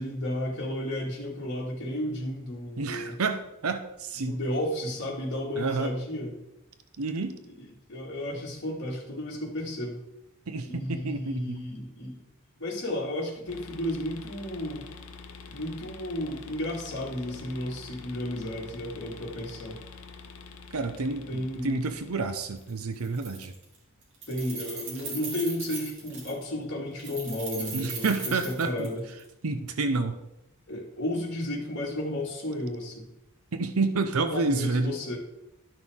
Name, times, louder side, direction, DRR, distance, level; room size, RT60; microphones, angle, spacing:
voice 1, 0.0-3.2 4.2-6.4 7.4-10.0 10.7-12.2 12.6-14.9 15.5-19.8 21.3-21.8 24.3-29.0 30.7-33.1 34.3-35.2, left 1 dB, 55° left, -2 dB, 2.2 m, -33 dB
voice 2, 2.8-4.4 5.6-5.9 7.0-7.4 10.5-11.6 20.7-23.5 27.7-28.9 29.4-30.2 33.5-35.0, right 3 dB, 75° right, 8 dB, 0.7 m, -29 dB
sound 1, 13.5-22.9, left 4 dB, 75° left, 0.7 m, -46 dB
Keys jangling, 22.6-22.7 23.0-23.8 24.0-26.4 27.0-29.2, right 4 dB, 55° right, 2.5 m, -38 dB
12.0 x 6.2 x 3.7 m, 0.90 s
head